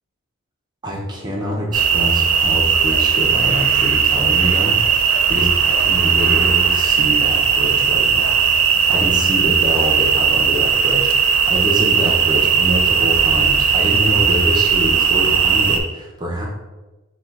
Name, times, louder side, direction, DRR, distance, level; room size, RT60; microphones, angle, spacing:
voice 1, 0.8-8.4 8.9-16.5, equal, 20° right, -3 dB, 0.6 m, -25 dB
sound 1, 1.7-15.8, right 6 dB, 85° right, 0.6 m, -17 dB
3.8 x 2.3 x 4.4 m, 1.1 s
head